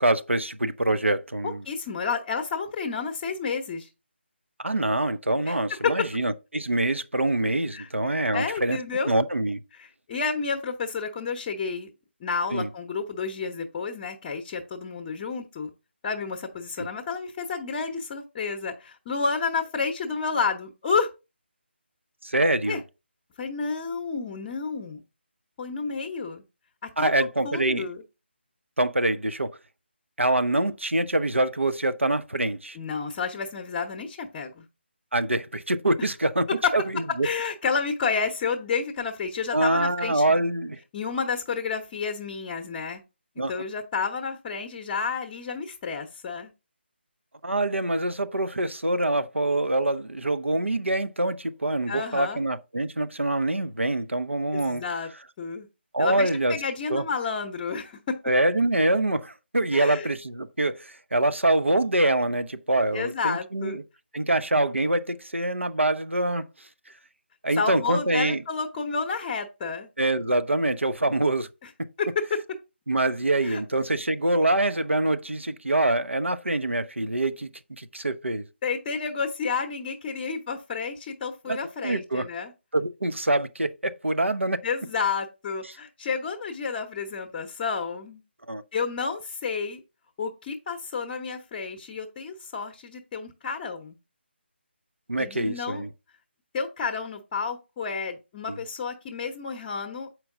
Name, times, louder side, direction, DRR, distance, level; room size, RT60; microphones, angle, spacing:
voice 1, 0.0-1.6 4.6-8.8 9.1-9.6 12.5-12.7 16.8-16.9 22.2-22.8 27.0-27.9 28.8-29.6 30.2-32.8 35.1-36.5 36.7-37.3 39.5-40.8 43.4-43.5 47.4-54.8 55.9-56.6 56.9-57.0 58.3-63.8 64.1-66.4 67.4-68.4 70.0-71.5 72.9-77.5 77.8-78.4 81.5-81.6 81.8-82.2 82.7-84.6 88.5-88.6 95.1-95.9 98.5-98.6, right 1 dB, 90° right, 0.7 m, -25 dB
voice 2, 1.4-3.9 5.5-5.6 5.8-6.0 7.7-7.9 8.3-9.1 9.7-11.9 12.2-15.7 16.0-21.1 22.7-22.8 23.4-25.0 25.6-26.4 26.8-28.0 32.7-34.7 36.6-36.7 37.2-40.4 40.9-43.0 43.5-46.5 51.9-52.4 54.5-55.1 55.4-55.7 56.0-58.2 59.7-60.1 62.9-63.8 67.6-69.9 72.0-72.4 73.4-73.6 78.6-82.5 84.6-88.2 88.7-89.8 90.2-94.0 95.2-95.8 96.5-100.2, left 5 dB, 20° left, 0.7 m, -30 dB
7.7 x 4.6 x 3.6 m
figure-of-eight pair, 150°, 6 cm